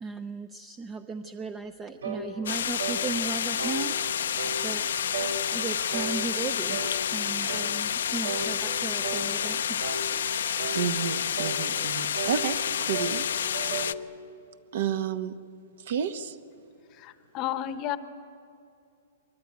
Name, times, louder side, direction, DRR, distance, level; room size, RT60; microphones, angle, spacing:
voice 1, 0.0-4.0 4.6-4.9 5.5-6.8 7.1-9.8, right 4 dB, 15° right, 10 dB, 0.6 m, -36 dB
sound 1, 2.0-2.3 2.8-3.0 3.6-3.8 4.4-4.6 5.1-5.4 5.9-6.2 6.7-6.9 7.5-7.7 8.2-8.5 9.0-9.3 9.8-10.0 10.6-10.8 11.3-11.6 12.1-12.4 12.9-13.2 13.5-14.0, right 5 dB, 85° right, 4.4 m, -34 dB
sound 2, 2.5-13.9, left 9 dB, 80° left, 0.6 m, -29 dB
voice 2, 10.7-12.6 12.9-13.2 14.7-15.3 15.9-16.3, right 8 dB, 60° right, 11 dB, 1.2 m, -30 dB
voice 3, 17.0-18.0, left 11 dB, 25° left, 11 dB, 0.9 m, -32 dB
24.0 x 21.5 x 9.4 m, 2.5 s
hypercardioid pair, 165°, 0 cm